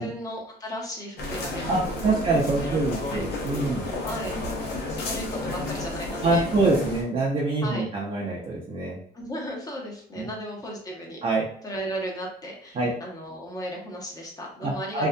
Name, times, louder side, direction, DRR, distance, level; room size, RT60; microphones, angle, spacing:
voice 1, 0.0-2.2 2.6-2.8 3.1-3.2 4.0-4.4 5.0-6.6 7.6-7.9 9.1-11.2 11.6-15.1, equal, 20° left, -1 dB, 0.9 m, -35 dB
sound 1, 1.2-7.0, left 2 dB, 75° left, 0.8 m, -32 dB
voice 2, 1.7-3.9 6.2-9.0 10.2-10.3 11.2-11.4 12.7-12.9 14.6-15.1, right 2 dB, 35° right, -4 dB, 0.6 m, -25 dB
2.6 x 2.4 x 2.2 m, 0.62 s
cardioid pair, 110°, 17 cm